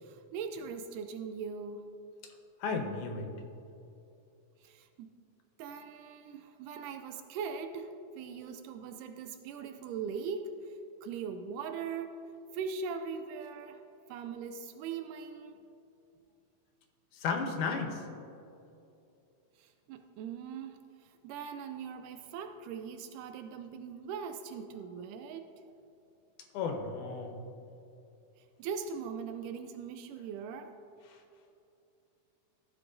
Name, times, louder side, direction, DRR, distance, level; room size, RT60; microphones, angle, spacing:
voice 1, 0.0-1.9 4.6-5.1 5.6-12.2 12.5-13.8 14.1-15.6 19.6-25.5 28.6-30.8, right 6 dB, 85° right, 7 dB, 2.1 m, -40 dB
voice 2, 2.6-3.3 17.1-18.0 26.5-27.3, left 4 dB, 75° left, 3 dB, 2.3 m, -33 dB
15.0 x 7.6 x 2.6 m, 2.7 s
omnidirectional pair, 3.6 m